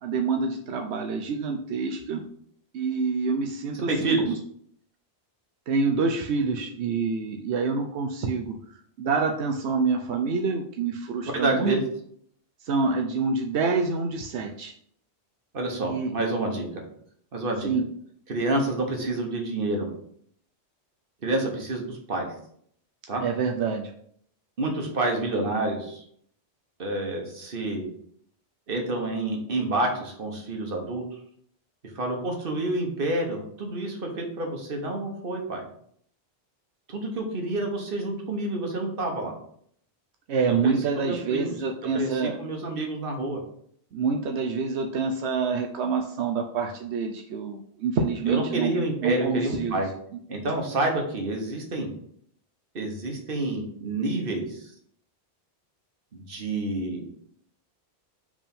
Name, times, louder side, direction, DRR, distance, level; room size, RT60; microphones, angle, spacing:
voice 1, 0.0-2.2 2.7-4.3 5.7-8.6 9.0-11.7 12.6-14.7 15.8-16.1 17.6-17.8 23.2-23.9 40.3-42.4 43.9-48.7 49.0-49.8, right 4 dB, 85° right, 3 dB, 0.9 m, -27 dB
voice 2, 3.7-4.3 11.3-11.8 15.5-16.7 17.3-17.7 18.3-19.9 21.2-22.3 23.1-23.2 24.6-26.0 26.8-27.9 28.7-31.0 31.9-35.6 36.9-39.3 40.5-41.5 41.9-43.4 48.3-49.9 50.3-51.9 52.7-54.7 56.1-57.0, right 2 dB, 55° right, 2 dB, 1.5 m, -28 dB
5.0 x 3.6 x 5.3 m, 0.64 s
omnidirectional pair, 1.1 m